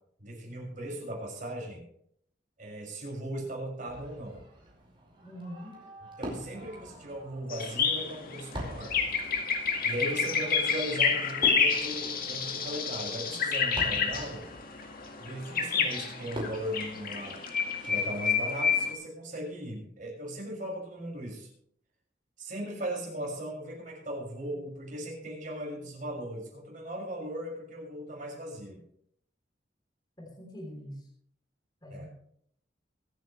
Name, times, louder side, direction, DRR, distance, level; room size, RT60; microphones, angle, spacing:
voice 1, 0.2-1.8 2.6-4.4 6.2-9.0 9.8-14.5 15.2-17.4 17.8-21.5 22.4-28.8 31.9-32.1, right 1 dB, 45° right, -2 dB, 6.4 m, -38 dB
Fireworks, 3.8-18.1, equal, 30° right, 5.0 m, -45 dB
voice 2, 5.2-5.7 30.2-31.1 31.8-32.1, equal, 25° left, -2 dB, 3.4 m, -43 dB
sound 1, 7.5-18.9, left 6 dB, 55° left, 1.9 m, -29 dB
24.5 x 9.7 x 3.3 m, 0.68 s
head